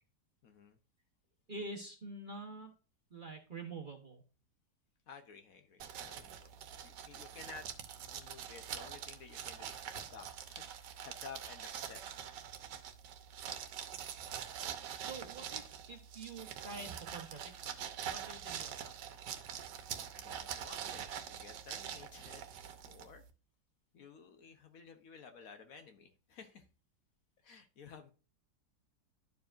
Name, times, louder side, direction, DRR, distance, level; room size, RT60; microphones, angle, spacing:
voice 1, 0.4-0.8 5.1-7.7 8.0-12.0 20.1-22.5 22.8-23.2 23.9-26.7 27.4-28.1, left 5 dB, 60° left, 7 dB, 1.1 m, -54 dB
voice 2, 1.5-2.7 3.1-4.2 15.0-19.1, right 2 dB, 35° right, 2 dB, 1.0 m, -47 dB
sound 1, 5.8-23.3, right 9 dB, 90° right, 1.5 m, -45 dB
12.0 x 4.7 x 2.5 m, 0.36 s
omnidirectional pair, 1.8 m